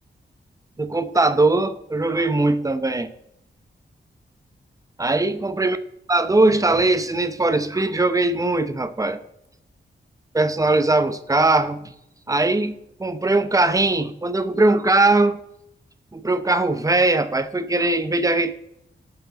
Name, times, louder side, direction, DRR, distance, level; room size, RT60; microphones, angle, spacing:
voice 1, 0.8-3.1 5.0-5.8 6.1-9.2 10.3-11.9 12.3-15.4 16.1-18.5, right 2 dB, 20° right, 10 dB, 0.6 m, -20 dB
17.5 x 7.0 x 3.9 m, 0.81 s
wide cardioid pair, 160°, 19 cm